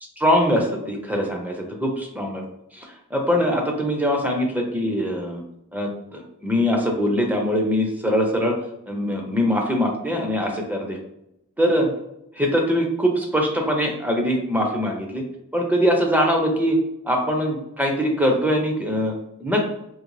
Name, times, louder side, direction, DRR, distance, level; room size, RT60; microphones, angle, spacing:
voice 1, 0.2-2.4 2.7-5.4 5.7-8.6 8.9-11.0 11.6-11.9 12.4-15.2 15.5-16.8 17.0-19.6, equal, 5° right, 1 dB, 0.5 m, -22 dB
3.8 x 2.9 x 3.2 m, 0.82 s
head